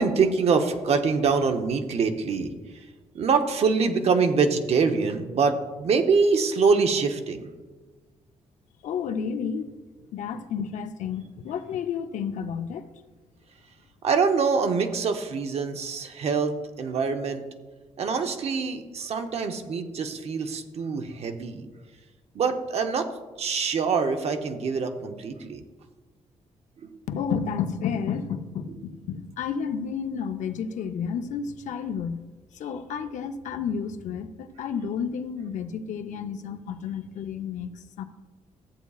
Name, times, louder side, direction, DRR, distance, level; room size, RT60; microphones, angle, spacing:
voice 1, 0.0-2.5 3.1-7.5 14.0-17.4 18.0-21.7 22.3-23.1 23.4-25.6 26.8-27.0, right 5 dB, 55° right, 6 dB, 0.8 m, -24 dB
voice 2, 8.8-9.7 10.1-12.8 27.1-32.2 32.6-37.7 38.0-38.1, left 7 dB, 85° left, 8 dB, 0.6 m, -31 dB
14.5 x 8.2 x 2.4 m, 1.3 s
wide cardioid pair, 150°, 12 cm